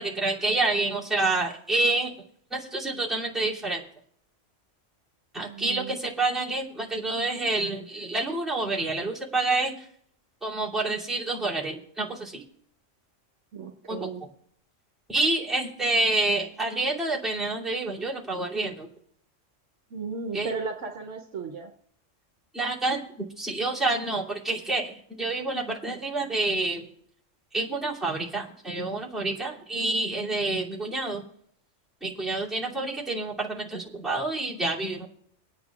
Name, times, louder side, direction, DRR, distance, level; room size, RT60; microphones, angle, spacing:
voice 1, 0.0-2.1 2.5-3.8 5.3-9.7 10.4-12.4 13.9-14.0 15.1-18.9 20.3-20.5 22.5-23.0 23.4-26.9 27.5-31.2 32.0-35.1, right 2 dB, ahead, -7 dB, 2.7 m, -28 dB
voice 2, 5.4-6.0 13.5-14.2 19.9-21.7, right 5 dB, 75° right, 4 dB, 1.2 m, -35 dB
26.0 x 9.0 x 2.4 m, 0.67 s
omnidirectional pair, 1.3 m